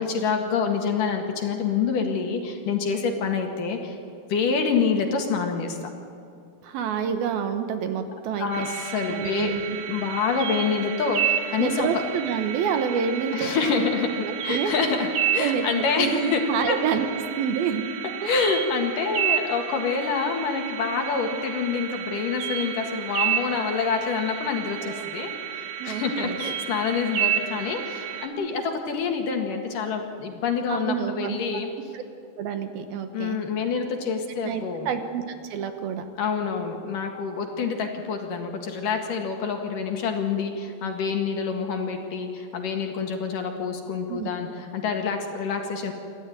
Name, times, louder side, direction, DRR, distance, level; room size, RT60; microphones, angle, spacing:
voice 1, 0.0-4.0 4.3-5.8 8.4-9.5 9.9-11.9 13.3-16.4 16.7-16.8 18.2-31.7 33.1-34.9 36.2-45.9, left 5 dB, 60° left, 3 dB, 3.2 m, -27 dB
voice 2, 6.6-8.7 9.1-9.8 11.6-13.9 14.2-14.7 15.4-17.1 17.4-17.8 18.2-18.3 22.5-22.9 24.9-25.0 25.8-26.4 30.7-31.4 31.6-32.0 32.4-33.4 34.4-36.0 44.1-44.3, right 7 dB, 70° right, 7 dB, 2.9 m, -28 dB
sound 1, 8.5-28.3, right 9 dB, 55° right, 2.8 m, -31 dB
28.0 x 13.5 x 9.3 m, 2.5 s
omnidirectional pair, 4.7 m